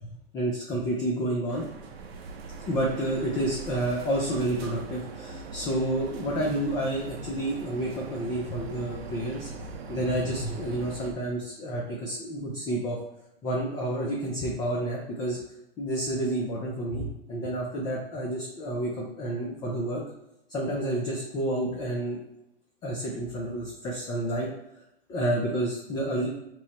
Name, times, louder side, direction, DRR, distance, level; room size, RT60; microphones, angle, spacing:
voice 1, 0.3-1.7 2.7-9.5 9.9-13.0 13.4-15.4 15.8-20.0 20.5-22.2 22.8-24.5 25.1-26.3, right 1 dB, 15° left, -2 dB, 0.3 m, -29 dB
sound 1, 1.5-11.1, right 3 dB, 90° right, 0.5 m, -41 dB
3.0 x 2.0 x 4.0 m, 0.85 s
hypercardioid pair, 125°, 30 cm